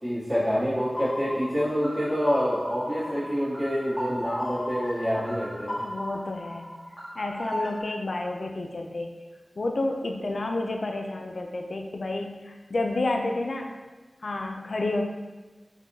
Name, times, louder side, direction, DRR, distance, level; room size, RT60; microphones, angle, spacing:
voice 1, 0.0-5.8, equal, 10° right, -17 dB, 1.4 m, -27 dB
sound 1, 1.0-7.8, equal, 20° left, 1.3 m, -36 dB
voice 2, 5.8-6.7 7.2-9.2 9.6-13.8 14.2-15.0, left 2 dB, 75° left, 3 dB, 0.3 m, -30 dB
4.6 x 2.1 x 2.6 m, 1.2 s
wide cardioid pair, 80°, 0 cm